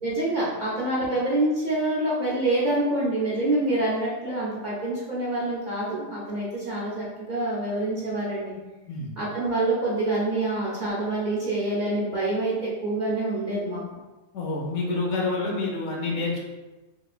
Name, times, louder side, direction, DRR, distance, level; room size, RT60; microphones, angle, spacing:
voice 1, 0.0-8.5 9.2-13.8, right 2 dB, 45° right, -7 dB, 0.6 m, -26 dB
voice 2, 14.3-16.4, left 3 dB, 70° left, -1 dB, 0.9 m, -28 dB
2.9 x 2.7 x 2.4 m, 1.1 s
omnidirectional pair, 1.3 m